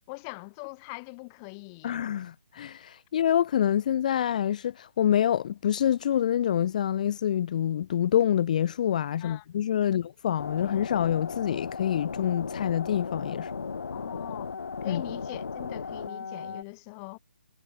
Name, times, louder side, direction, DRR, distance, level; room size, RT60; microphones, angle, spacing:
voice 1, 0.1-2.0 9.2-9.5 9.8-10.0 13.9-17.2, left 33 dB, 20° left, 3.4 m, -42 dB
voice 2, 1.8-13.5 14.9-15.0, left 10 dB, 40° left, 0.4 m, -26 dB
sound 1, 10.4-16.6, left 5 dB, 70° left, 5.7 m, -36 dB
hypercardioid pair, 160°, 7 cm